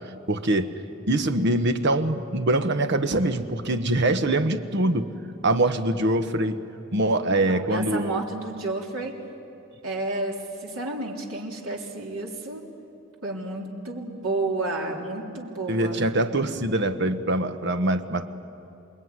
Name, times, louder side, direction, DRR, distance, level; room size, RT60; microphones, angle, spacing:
voice 1, 0.3-0.8 1.1-5.1 5.4-6.6 6.9-8.2 15.7-18.3, right 1 dB, 55° right, 9 dB, 1.2 m, -23 dB
voice 2, 7.3-9.1 9.8-12.7 13.2-16.0, right 2 dB, 85° right, 0 dB, 3.5 m, -31 dB
28.0 x 21.0 x 9.7 m, 2.7 s
head